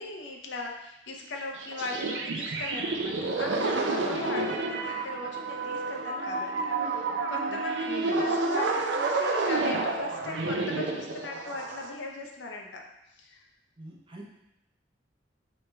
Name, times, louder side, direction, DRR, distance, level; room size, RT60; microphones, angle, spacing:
voice 1, 0.0-12.8 13.2-13.4, left 3 dB, 80° left, 0 dB, 0.7 m, -39 dB
sound 1, 1.6-11.9, right 3 dB, 75° right, 0.5 m, -30 dB
voice 2, 7.9-8.2 13.8-14.4, right 1 dB, 30° right, -3 dB, 0.8 m, -44 dB
4.2 x 3.3 x 3.3 m, 0.85 s
head